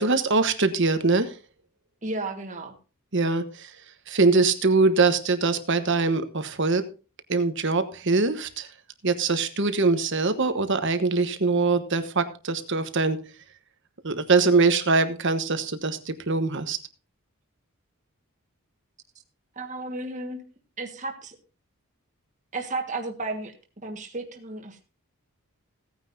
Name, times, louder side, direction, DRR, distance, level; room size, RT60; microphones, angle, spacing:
voice 1, 0.0-1.3 3.1-3.7 4.1-6.8 7.3-8.7 9.0-13.2 14.0-16.8, right 3 dB, 55° right, 10 dB, 1.2 m, -23 dB
voice 2, 2.0-2.7 19.5-20.4 20.8-21.3 22.5-23.5 23.8-24.8, right 2 dB, 35° right, 3 dB, 1.6 m, -33 dB
16.5 x 9.5 x 2.7 m, 0.33 s
head